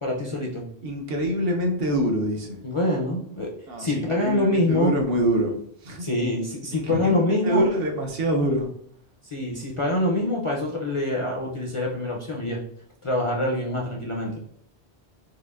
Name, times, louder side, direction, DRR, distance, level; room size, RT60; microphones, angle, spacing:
voice 1, 0.0-0.6 2.6-3.5 3.8-4.9 6.0-7.6 9.2-12.6 13.0-14.3, left 1 dB, 40° left, -1 dB, 0.4 m, -25 dB
voice 2, 0.8-2.6 3.7-5.6 5.8-6.1 6.7-8.7, equal, 65° right, 1 dB, 0.9 m, -25 dB
4.7 x 2.5 x 2.4 m, 0.67 s
omnidirectional pair, 1.1 m